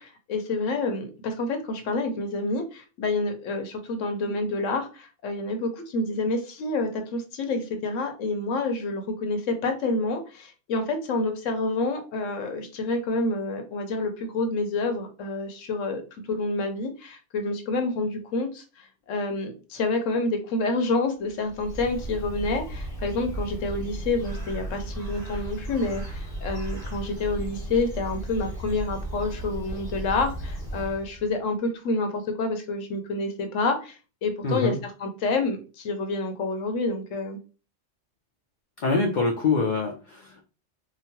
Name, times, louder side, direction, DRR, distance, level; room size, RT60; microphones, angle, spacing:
voice 1, 0.0-16.0 16.3-37.4, left 3 dB, 85° left, 6 dB, 1.0 m, -28 dB
Bird, 21.3-31.3, right 1 dB, 50° left, 1.1 m, -35 dB
voice 2, 34.4-34.8 38.8-40.4, left 4 dB, 65° left, 2 dB, 0.4 m, -25 dB
2.9 x 2.1 x 2.8 m, 0.33 s
omnidirectional pair, 1.3 m